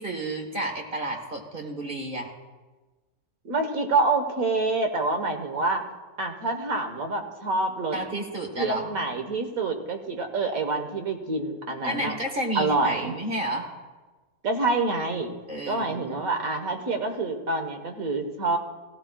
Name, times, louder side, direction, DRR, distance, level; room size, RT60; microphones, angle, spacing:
voice 1, 0.0-2.3 7.9-8.9 11.8-13.7 15.5-16.2, right 1 dB, 35° right, 2 dB, 1.3 m, -31 dB
voice 2, 3.5-5.8 6.2-8.0 8.6-12.2 12.6-13.2 14.4-15.3 15.7-18.6, right 3 dB, 65° right, 5 dB, 1.7 m, -27 dB
17.5 x 16.0 x 2.3 m, 1.3 s
omnidirectional pair, 1.6 m